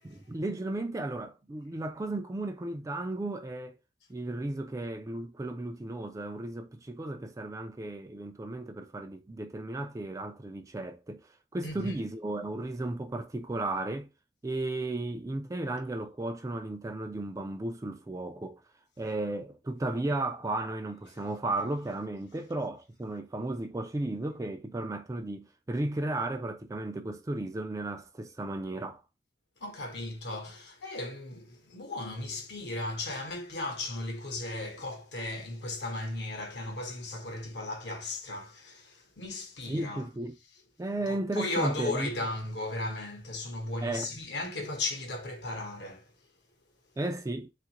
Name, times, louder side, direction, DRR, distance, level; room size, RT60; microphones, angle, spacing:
voice 1, 0.0-3.8 4.1-14.1 14.4-18.6 19.0-29.0 39.7-40.4 40.8-42.1 43.8-44.1 44.6-44.7 47.0-47.5, right 2 dB, 20° right, 0.3 m, -34 dB
voice 2, 11.6-12.0 29.6-40.1 41.1-46.1, left 2 dB, 65° left, 1.0 m, -36 dB
3.4 x 2.5 x 2.9 m
head